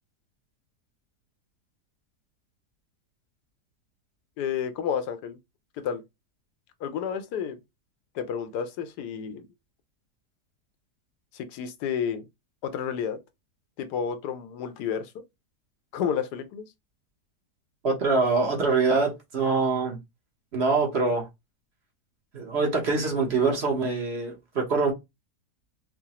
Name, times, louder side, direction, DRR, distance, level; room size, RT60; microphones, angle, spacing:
voice 1, 4.4-5.4 5.8-6.0 6.8-7.6 8.1-9.4 11.3-12.3 12.6-13.2 13.8-15.1 15.9-16.6, left 7 dB, 85° left, 1.2 m, -30 dB
voice 2, 17.8-20.0 20.5-21.3 22.3-24.9, right 4 dB, 50° right, 1.0 m, -24 dB
4.7 x 2.0 x 2.9 m
omnidirectional pair, 1.7 m